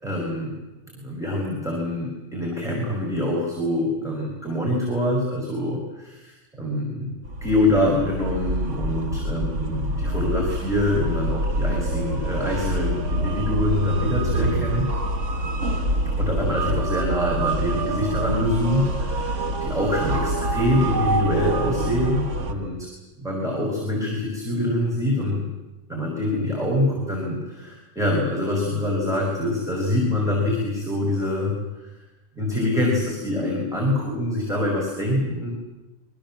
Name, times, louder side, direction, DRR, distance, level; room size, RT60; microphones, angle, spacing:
voice 1, 0.0-0.5 0.9-14.9 16.1-22.8 23.2-25.4 25.9-31.5 31.8-31.9 32.4-35.5, left 1 dB, ahead, -3 dB, 5.7 m, -25 dB
sound 1, 7.2-22.5, right 1 dB, 65° right, 1.7 m, -26 dB
25.5 x 24.5 x 7.6 m, 1.0 s
omnidirectional pair, 1.3 m